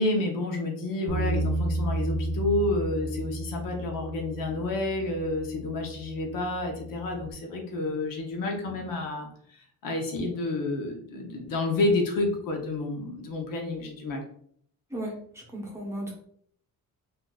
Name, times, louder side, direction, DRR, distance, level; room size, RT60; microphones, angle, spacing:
voice 1, 0.0-9.3 9.8-14.2, left 2 dB, 75° left, 2 dB, 0.8 m, -29 dB
Bass guitar, 1.1-7.3, right 2 dB, 75° right, 0.5 m, -33 dB
voice 2, 14.9-16.1, right 1 dB, 10° right, -3 dB, 1.0 m, -35 dB
3.7 x 2.6 x 2.3 m, 0.62 s
cardioid pair, 120°, 34 cm